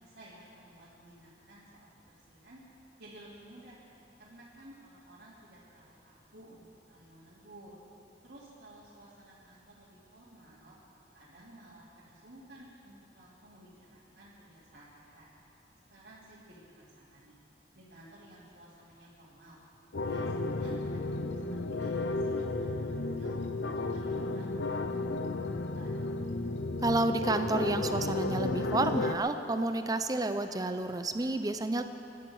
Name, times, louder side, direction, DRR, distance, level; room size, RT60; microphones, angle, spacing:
voice 1, 0.0-2.6 3.0-3.8 4.2-7.8 8.2-10.8 11.1-15.3 15.9-17.4 17.7-19.6 20.0-23.3 23.9-24.5 24.8-26.0, right 1 dB, 70° right, -10 dB, 3.3 m, -55 dB
sound 1, 19.9-29.1, left 2 dB, 90° left, 0.7 m, -33 dB
voice 2, 26.8-31.8, right 2 dB, 20° right, 8 dB, 0.6 m, -30 dB
24.5 x 11.5 x 4.8 m, 2.8 s
head